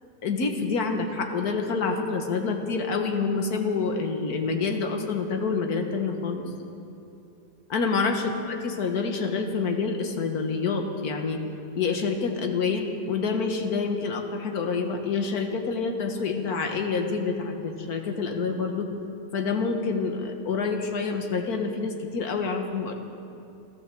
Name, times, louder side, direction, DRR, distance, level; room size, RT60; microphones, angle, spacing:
voice 1, 0.2-6.5 7.7-11.4 11.8-18.9 19.3-22.9, left 4 dB, 60° left, 4 dB, 1.8 m, -27 dB
13.5 x 13.5 x 7.6 m, 2.7 s
omnidirectional pair, 1.8 m